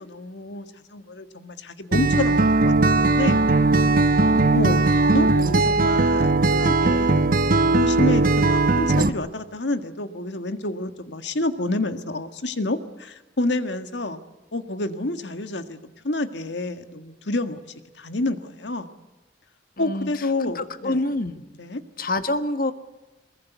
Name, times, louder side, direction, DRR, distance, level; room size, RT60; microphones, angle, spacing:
voice 1, 0.0-3.4 4.5-4.9 5.1-7.3 7.7-14.2 14.5-15.8 16.0-17.6 18.0-18.9 19.8-21.0 21.6-21.8, left 2 dB, 80° left, 9 dB, 1.8 m, -28 dB
Acoustic guitar, 1.9-9.1, right 3 dB, 50° right, 1.1 m, -19 dB
voice 2, 19.8-20.1 20.5-21.4 22.0-22.7, left 2 dB, 55° left, 10 dB, 1.5 m, -26 dB
23.0 x 21.5 x 8.3 m, 1.2 s
head